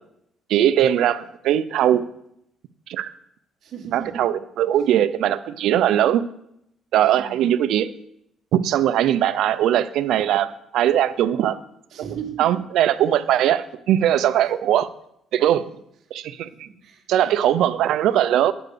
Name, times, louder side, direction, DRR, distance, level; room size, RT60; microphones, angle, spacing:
voice 1, 0.5-2.0 2.9-3.1 3.9-6.2 6.9-7.9 8.5-11.6 12.4-14.9 15.3-15.6 16.1-16.5 17.1-18.5, right 11 dB, 75° right, 13 dB, 0.5 m, -20 dB
voice 2, 3.6-4.3 6.9-7.5 11.9-12.6 15.4-15.5 16.7-17.4, right 8 dB, 60° right, 1 dB, 1.7 m, -37 dB
8.7 x 4.9 x 6.7 m, 0.76 s
cardioid pair, 115°, 0 cm